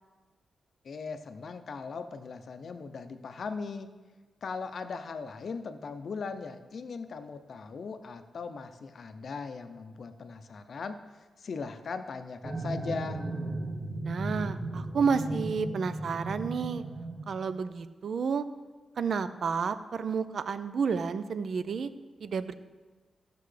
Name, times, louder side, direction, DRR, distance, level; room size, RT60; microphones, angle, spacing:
voice 1, 0.8-3.9 4.4-13.2, left 4 dB, 50° left, 9 dB, 0.6 m, -39 dB
sound 1, 12.4-17.6, right 2 dB, 15° right, 0.8 m, -36 dB
voice 2, 14.0-16.8 17.3-18.4 19.0-21.9 22.2-22.5, right 5 dB, 55° right, 12 dB, 0.4 m, -30 dB
14.5 x 6.7 x 3.3 m, 1.3 s
wide cardioid pair, 180°, 0 cm